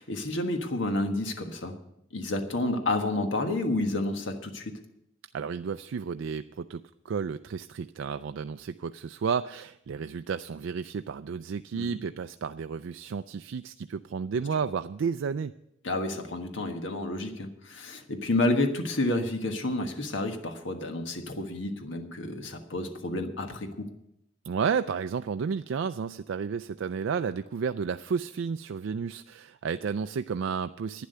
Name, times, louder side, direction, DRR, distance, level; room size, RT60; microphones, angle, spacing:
voice 1, 0.0-1.7 2.1-4.7 11.7-11.9 14.3-14.4 15.8-23.9, left 2 dB, 85° left, 5 dB, 1.5 m, -30 dB
voice 2, 5.3-15.5 24.4-31.1, right 6 dB, 85° right, 10 dB, 0.4 m, -32 dB
11.5 x 10.0 x 6.7 m, 0.78 s
head